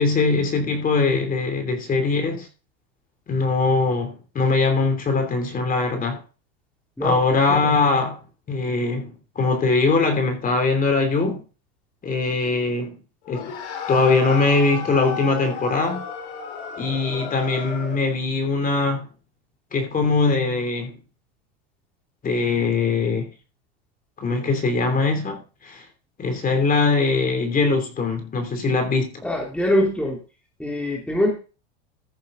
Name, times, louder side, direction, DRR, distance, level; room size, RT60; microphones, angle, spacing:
voice 1, 0.0-2.5 3.3-6.2 7.0-8.2 8.5-11.4 12.0-13.0 13.3-13.5 13.9-16.0 16.8-19.1 19.7-21.0 22.2-23.3 24.2-25.8 26.2-29.2, left 3 dB, 25° left, 3.1 m, -21 dB
sound 1, 13.3-18.1, left 6 dB, 75° left, 4.2 m, -33 dB
voice 2, 29.2-30.2 30.6-31.3, left 1 dB, 5° left, 2.8 m, -22 dB
14.5 x 7.1 x 3.9 m
supercardioid pair, 115°, 33 cm